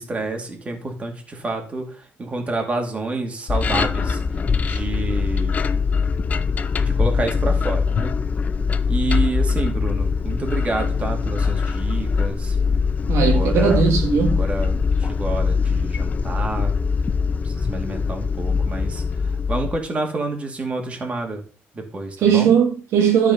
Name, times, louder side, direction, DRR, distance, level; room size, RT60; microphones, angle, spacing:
voice 1, 0.0-4.2 4.6-5.6 6.8-8.1 8.9-12.6 13.1-13.9 14.4-16.8 17.4-19.0 19.5-21.4 21.7-22.5, right 2 dB, 25° right, 2.6 m, -28 dB
sound 1, 3.5-19.8, left 5 dB, 35° left, 0.6 m, -22 dB
voice 2, 13.1-14.4 22.2-23.3, right 7 dB, 75° right, 1.7 m, -18 dB
12.5 x 4.9 x 5.5 m
cardioid pair, 130°, 5 cm